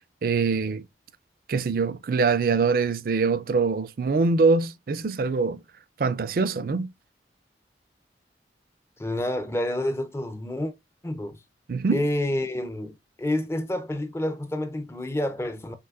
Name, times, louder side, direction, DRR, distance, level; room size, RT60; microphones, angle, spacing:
voice 1, 0.2-0.8 1.5-5.6 6.0-6.9 11.7-12.0, right 4 dB, 50° right, 0.4 m, -23 dB
voice 2, 9.0-10.7 11.0-11.4 11.9-15.7, left 1 dB, 15° left, 0.5 m, -28 dB
5.8 x 2.9 x 2.4 m
head